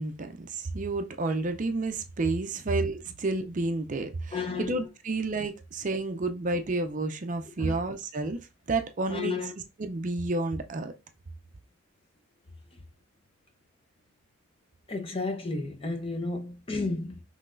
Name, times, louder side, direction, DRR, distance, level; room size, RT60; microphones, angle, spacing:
voice 1, 0.0-8.4 8.7-9.4 9.8-10.9, right 3 dB, 35° right, 0.5 m, -30 dB
voice 2, 4.3-4.8 7.6-7.8 9.1-9.5 14.9-17.2, left 3 dB, 25° left, 0.6 m, -32 dB
5.7 x 3.2 x 2.5 m
head